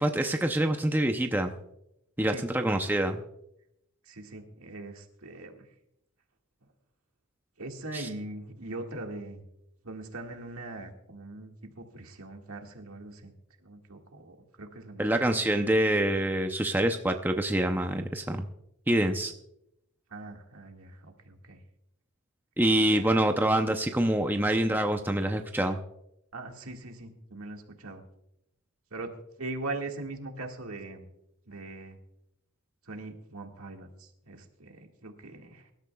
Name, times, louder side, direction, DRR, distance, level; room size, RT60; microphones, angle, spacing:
voice 1, 0.0-1.5 2.2-3.2 7.9-8.1 15.0-18.5 18.9-19.3 22.6-25.8, right 1 dB, 10° right, 5 dB, 0.6 m, -26 dB
voice 2, 4.0-5.7 7.6-9.4 9.8-13.3 13.6-15.1 20.1-21.6 22.8-23.1 26.3-28.0 28.9-29.1 29.4-31.1 31.5-32.0 32.8-35.7, right 2 dB, 65° right, 3 dB, 1.9 m, -41 dB
24.0 x 12.5 x 2.3 m, 0.81 s
head